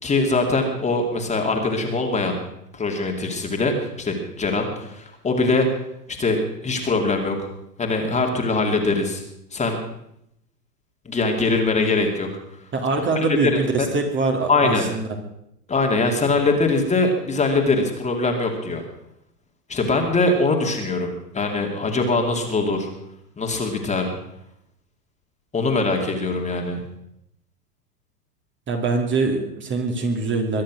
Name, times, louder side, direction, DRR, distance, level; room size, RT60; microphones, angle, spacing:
voice 1, 0.0-2.4 2.7-5.7 6.2-7.5 7.8-9.2 9.5-9.8 11.1-12.3 13.0-13.6 14.5-14.8 15.7-18.8 19.7-22.9 23.4-24.1 25.5-26.8, left 3 dB, 15° left, 2 dB, 2.6 m, -22 dB
voice 2, 12.7-15.1 28.7-30.6, right 3 dB, 25° right, 3 dB, 2.7 m, -23 dB
22.5 x 10.5 x 6.2 m, 0.80 s
hypercardioid pair, 105°, 48 cm